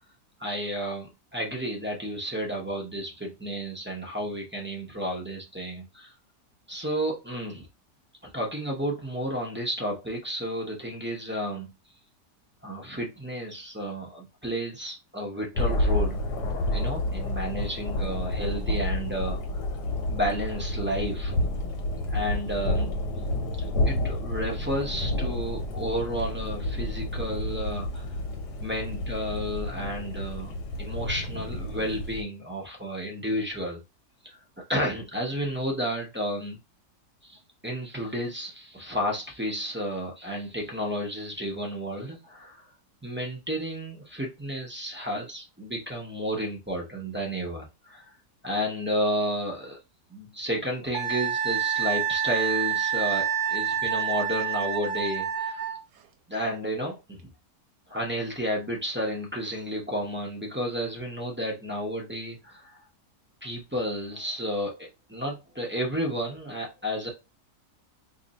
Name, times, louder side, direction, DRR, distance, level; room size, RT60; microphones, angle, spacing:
voice 1, 0.4-6.1 6.7-7.7 8.2-11.7 12.6-16.2 16.7-19.6 20.1-21.3 22.1-23.2 23.9-28.1 28.6-30.5 30.8-33.8 34.2-34.4 34.7-36.6 37.2-42.6 43.0-48.1 48.4-49.8 50.1-55.7 56.3-57.2 57.9-62.8 63.4-67.1, equal, 15° right, -1 dB, 0.4 m, -32 dB
Thunder, 15.5-32.2, left 1 dB, 85° left, 1.4 m, -30 dB
Wind instrument woodwind instrument, 50.9-55.8, right 8 dB, 85° right, 1.2 m, -27 dB
2.9 x 2.6 x 4.0 m, 0.26 s
omnidirectional pair, 1.7 m